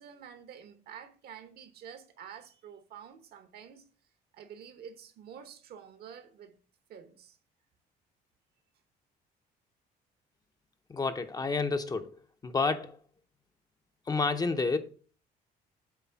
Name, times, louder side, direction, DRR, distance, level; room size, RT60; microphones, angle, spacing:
voice 1, 0.0-3.8 4.3-6.5 6.9-7.4, right 8 dB, 65° right, 1.1 m, -49 dB
voice 2, 10.9-12.1 12.4-13.0 14.1-14.8, left 4 dB, 20° left, 0.6 m, -29 dB
8.3 x 3.2 x 5.7 m
cardioid pair, 110°, 17 cm